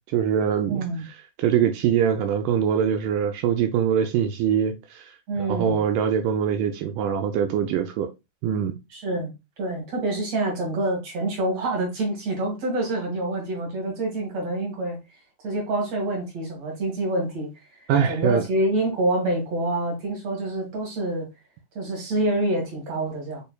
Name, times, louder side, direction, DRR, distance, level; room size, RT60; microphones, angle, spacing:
voice 1, 0.1-0.8 1.4-5.2 5.5-8.1 8.4-8.8 17.9-18.4, right 8 dB, 80° right, 2.0 m, -23 dB
voice 2, 0.7-1.0 5.3-5.8 8.9-9.3 9.6-15.0 15.4-17.5 18.1-21.3 21.8-23.4, right 1 dB, 50° right, 2.7 m, -26 dB
6.7 x 3.4 x 2.2 m
omnidirectional pair, 4.0 m